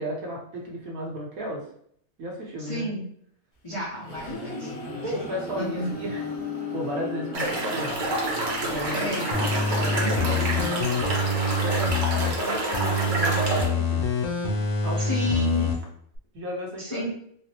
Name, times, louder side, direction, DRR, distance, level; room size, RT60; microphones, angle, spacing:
voice 1, 0.0-1.6 2.2-2.9 5.0-6.2 6.7-7.9 8.6-9.0 9.3-10.7 11.6-14.1 14.8-15.7 16.3-17.1, right 1 dB, 70° right, -2 dB, 1.3 m, -34 dB
voice 2, 2.6-3.0 3.6-4.7 5.0-5.1 5.6-5.9 8.7-9.2 10.0-10.3 15.0-15.7 16.8-17.1, equal, 35° left, -7 dB, 0.5 m, -31 dB
sound 1, 3.7-11.4, left 3 dB, 75° left, 1.4 m, -36 dB
sound 2, 7.3-13.7, right 1 dB, 45° right, 0.7 m, -28 dB
sound 3, 9.3-12.3 12.7-15.7 16.1-16.2, left 2 dB, 90° left, 1.1 m, -26 dB
3.9 x 2.0 x 2.9 m, 0.66 s
omnidirectional pair, 1.5 m